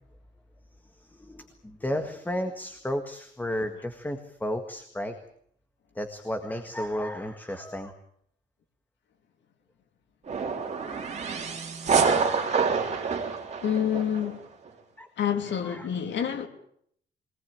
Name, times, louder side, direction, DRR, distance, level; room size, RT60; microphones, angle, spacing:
voice 1, 0.9-5.2 6.0-7.9 15.0-15.1 15.5-15.9, left 1 dB, 10° left, 1.7 m, -33 dB
sound 1, 10.3-14.3, right 5 dB, 35° right, 3.5 m, -27 dB
voice 2, 13.6-14.4 15.2-16.5, left 9 dB, 70° left, 2.9 m, -27 dB
23.5 x 19.0 x 8.8 m
wide cardioid pair, 155°, 19 cm